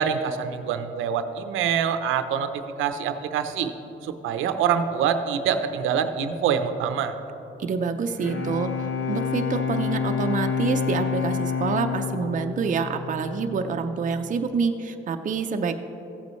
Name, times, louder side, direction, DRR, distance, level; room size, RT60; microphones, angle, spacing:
voice 1, 0.0-2.5 2.8-3.7 4.0-7.1, right 7 dB, 90° right, 9 dB, 0.7 m, -25 dB
voice 2, 7.6-15.7, right 5 dB, 40° right, 5 dB, 0.6 m, -27 dB
Bowed string instrument, 7.9-13.7, left 6 dB, 70° left, 1.1 m, -28 dB
15.0 x 8.3 x 3.1 m, 3.0 s
cardioid pair, 90°, 20 cm